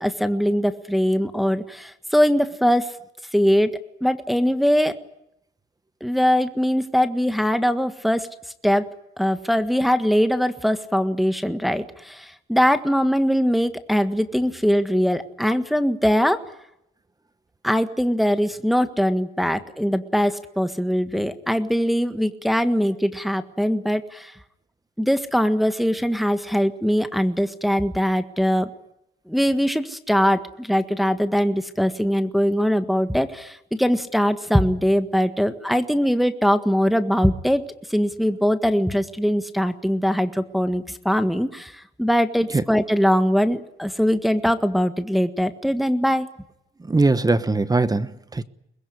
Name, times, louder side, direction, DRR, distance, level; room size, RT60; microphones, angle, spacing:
voice 1, 0.0-2.9 3.3-4.9 6.0-8.3 8.6-8.9 9.2-16.4 17.6-24.3 25.0-28.7 29.3-37.6 37.9-46.3, equal, ahead, 1.7 m, -21 dB
voice 2, 46.8-48.4, right 3 dB, 20° right, 1.2 m, -21 dB
24.0 x 21.0 x 9.9 m
cardioid pair, 90°, 20 cm